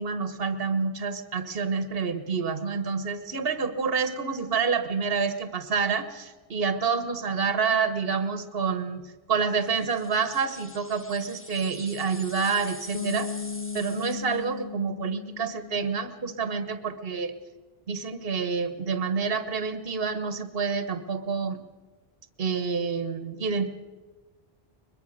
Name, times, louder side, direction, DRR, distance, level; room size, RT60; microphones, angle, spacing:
voice 1, 0.0-13.3 13.7-17.3 17.9-21.6 22.4-23.7, right 5 dB, 70° right, 9 dB, 1.6 m, -28 dB
sound 1, 9.6-14.5, left 1 dB, 10° left, 1.2 m, -45 dB
Bass guitar, 12.9-16.7, left 6 dB, 50° left, 1.7 m, -37 dB
22.0 x 22.0 x 6.6 m, 1.3 s
omnidirectional pair, 1.0 m